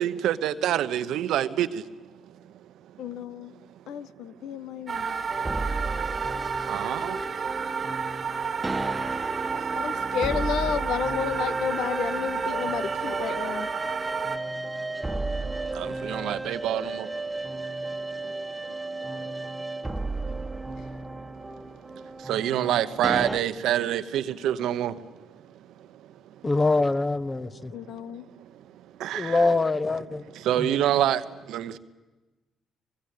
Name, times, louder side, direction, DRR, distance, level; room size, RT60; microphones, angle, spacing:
voice 1, 0.0-1.7 6.7-7.2 15.8-17.1 22.3-24.9 29.0-29.4 30.5-31.2 31.5-31.8, right 11 dB, 75° right, 1.0 m, -26 dB
voice 2, 3.0-3.5 3.9-5.2 9.8-13.7 19.1-19.3 27.7-28.2, left 9 dB, 75° left, 0.8 m, -32 dB
sound 1, 4.9-14.4, right 6 dB, 50° right, 1.1 m, -31 dB
sound 2, 5.3-23.4, right 2 dB, 15° right, 1.4 m, -34 dB
voice 3, 26.4-27.7 29.1-30.2 30.5-30.7, left 3 dB, 25° left, 1.2 m, -24 dB
24.0 x 22.5 x 8.6 m
supercardioid pair, 60°, 0 cm